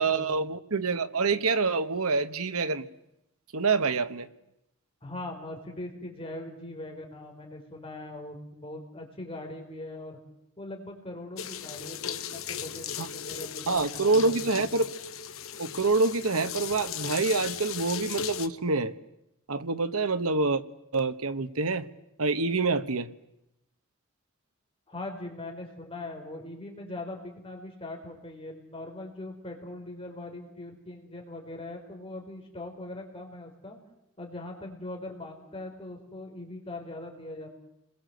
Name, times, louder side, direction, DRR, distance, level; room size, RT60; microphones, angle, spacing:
voice 1, 0.0-2.9 3.5-4.3 13.0-13.1 13.7-14.9 15.6-18.9 19.5-20.6 20.9-21.9 22.2-23.1, right 3 dB, 85° right, 1.3 m, -26 dB
voice 2, 5.0-10.2 10.6-14.6 24.9-33.8 34.2-37.5, left 2 dB, 25° left, 4.6 m, -41 dB
sound 1, 11.4-18.5, left 8 dB, 70° left, 1.4 m, -37 dB
30.0 x 21.5 x 8.0 m
head